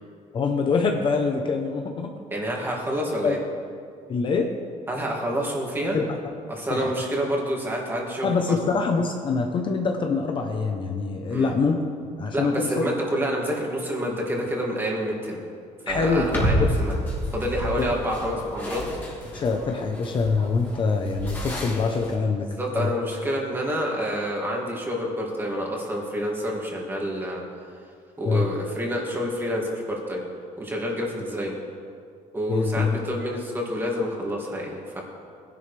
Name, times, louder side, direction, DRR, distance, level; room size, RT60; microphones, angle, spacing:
voice 1, 0.3-2.1 2.7-2.8 3.2-3.4 4.1-4.5 5.9-6.3 6.7-6.9 8.2-11.8 12.2-12.8 15.9-16.7 17.7-17.9 19.3-22.5 22.7-22.9 28.2-28.5 32.5-33.0, left 4 dB, 35° left, 3 dB, 0.9 m, -24 dB
voice 2, 2.3-3.4 4.9-6.0 6.5-8.4 11.3-11.5 12.3-15.4 15.9-17.0 17.3-18.9 22.5-27.4 28.2-30.2 30.6-31.5 32.3-35.0, equal, 15° right, -2 dB, 2.5 m, -28 dB
sound 1, 15.9-22.2, equal, 15° left, 2.6 m, -30 dB
20.0 x 11.0 x 3.4 m, 2.2 s
cardioid pair, 140°, 14 cm